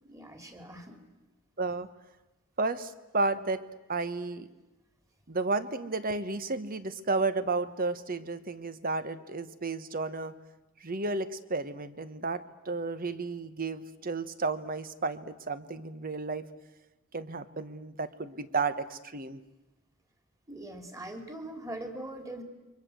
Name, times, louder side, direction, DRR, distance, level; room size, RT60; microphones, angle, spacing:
voice 1, 0.0-1.0 20.5-22.4, right 1 dB, 15° right, 6 dB, 3.0 m, -41 dB
voice 2, 1.6-1.9 2.6-3.6 3.9-4.5 5.3-10.3 10.8-16.5 17.1-19.4, right 3 dB, 40° right, 13 dB, 1.3 m, -32 dB
28.5 x 24.0 x 7.9 m, 1.0 s
head